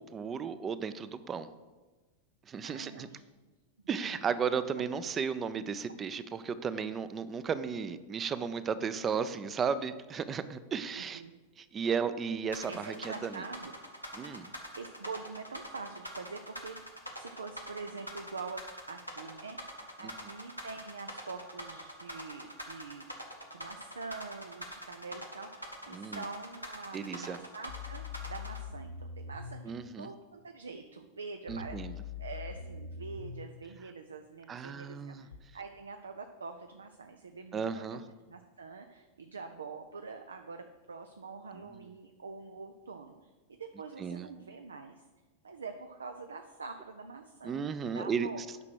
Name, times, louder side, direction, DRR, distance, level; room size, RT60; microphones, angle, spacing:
voice 1, 0.0-1.5 2.5-3.1 3.9-11.2 11.6-13.4 14.1-14.5 20.0-20.1 25.9-26.2 26.9-27.4 29.6-30.1 31.5-31.9 34.5-35.3 37.5-38.0 41.5-41.6 44.0-44.3 47.4-48.3, right 6 dB, 25° right, 14 dB, 0.6 m, -34 dB
voice 2, 2.6-3.2 3.8-4.2 10.9-11.3 12.6-13.7 14.8-23.1 23.5-29.7 30.0-38.0 38.3-45.0 45.4-48.4, right 4 dB, 70° right, 6 dB, 0.6 m, -45 dB
sound 1, 12.5-28.6, equal, 90° right, 1.3 m, -44 dB
sound 2, 27.7-29.6 31.5-33.5 35.3-35.4, left 5 dB, 75° left, 0.9 m, -42 dB
9.6 x 6.0 x 6.2 m, 1.3 s
figure-of-eight pair, 90°, 0 cm